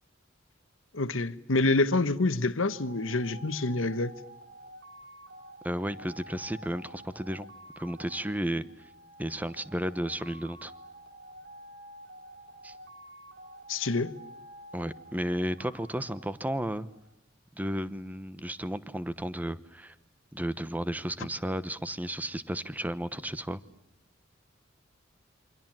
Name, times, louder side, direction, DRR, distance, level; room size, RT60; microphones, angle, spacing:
voice 1, 0.9-4.1 13.7-14.2, left 2 dB, 70° left, 1.2 m, -27 dB
sound 1, 2.6-17.1, right 1 dB, 50° right, 4.2 m, -50 dB
voice 2, 5.6-7.5 7.8-8.6 9.2-10.7 12.6-12.7 14.7-16.9 17.6-19.9 20.3-23.6, equal, 10° right, 1.0 m, -33 dB
28.0 x 25.0 x 7.5 m
head